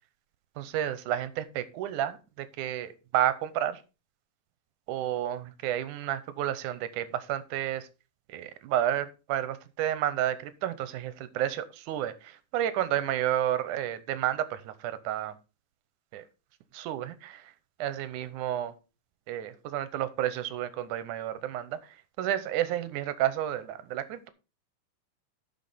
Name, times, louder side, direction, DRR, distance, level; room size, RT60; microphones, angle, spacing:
voice 1, 0.6-3.8 4.9-7.9 8.3-15.3 16.1-16.3 16.7-17.5 17.8-18.7 19.3-24.3, right 11 dB, 75° right, 13 dB, 2.2 m, -31 dB
12.5 x 6.0 x 4.1 m, 0.30 s
omnidirectional pair, 3.9 m